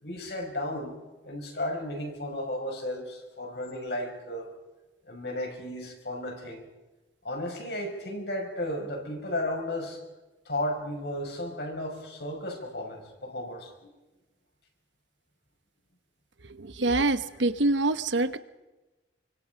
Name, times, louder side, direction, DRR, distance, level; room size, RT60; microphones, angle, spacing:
voice 1, 0.0-0.9 1.2-4.5 5.1-6.6 7.2-10.0 10.4-13.9, left 1 dB, 65° left, 2 dB, 6.2 m, -34 dB
voice 2, 16.6-18.4, right 2 dB, 85° right, 11 dB, 1.1 m, -25 dB
27.5 x 25.0 x 5.2 m, 1.1 s
head